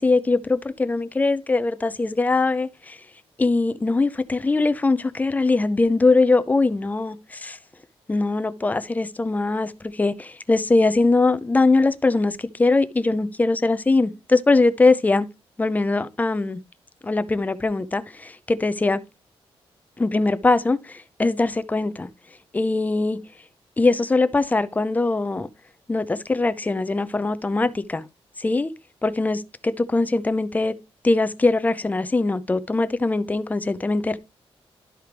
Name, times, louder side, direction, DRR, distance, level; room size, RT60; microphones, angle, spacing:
voice 1, 0.0-3.0 3.4-7.6 8.1-15.3 15.6-16.6 17.0-19.0 20.0-22.1 22.5-23.2 23.8-25.5 25.9-28.0 28.4-28.7 29.0-30.8 31.0-34.2, left 3 dB, 15° left, 0.5 m, -21 dB
12.5 x 4.6 x 3.3 m
wide cardioid pair, 160°, 10 cm